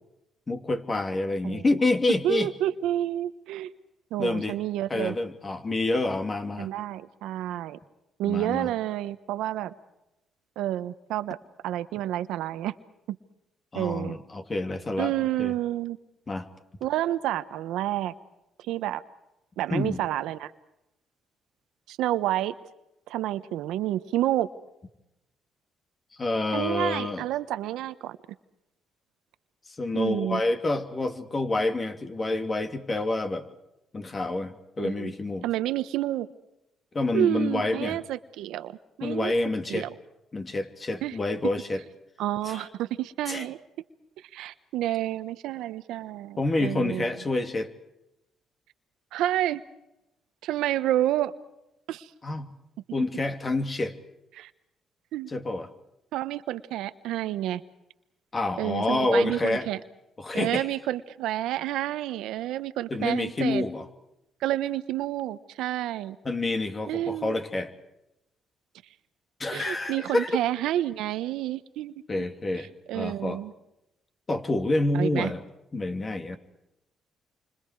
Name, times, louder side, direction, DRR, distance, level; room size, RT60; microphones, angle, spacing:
voice 1, 0.5-2.5 4.2-4.6 4.9-6.7 8.2-8.7 13.7-15.5 16.3-16.5 19.7-20.0 26.2-27.2 29.7-33.5 33.9-35.5 36.9-38.0 39.0-39.9 40.3-41.8 42.4-42.6 43.3-43.5 46.4-47.7 52.2-52.5 52.9-53.9 55.3-55.7 58.3-59.7 60.2-60.7 62.9-63.9 66.2-67.7 69.4-70.3 72.1-72.7 72.9-73.4 74.3-75.4 75.7-76.4, left 2 dB, 30° left, 7 dB, 2.9 m, -28 dB
voice 2, 2.2-3.7 4.1-5.2 6.6-7.8 8.2-9.7 10.6-11.4 11.6-12.7 13.1-13.2 13.7-14.2 15.0-16.0 16.8-18.1 18.6-19.0 19.6-20.5 21.9-22.5 23.1-24.5 26.5-28.2 29.9-30.4 34.8-35.1 35.4-36.3 37.1-39.3 39.7-39.9 41.0-41.2 42.2-43.6 44.3-47.1 49.1-49.6 50.4-51.3 51.9-52.1 54.3-54.5 55.1-55.3 56.1-57.6 58.6-59.8 60.3-63.7 64.4-66.2 66.9-67.4 69.5-71.9 72.6-73.5 74.9-75.3, right 13 dB, 90° right, 12 dB, 1.2 m, -29 dB
29.0 x 26.0 x 4.9 m, 0.88 s
cardioid pair, 90°, 0 cm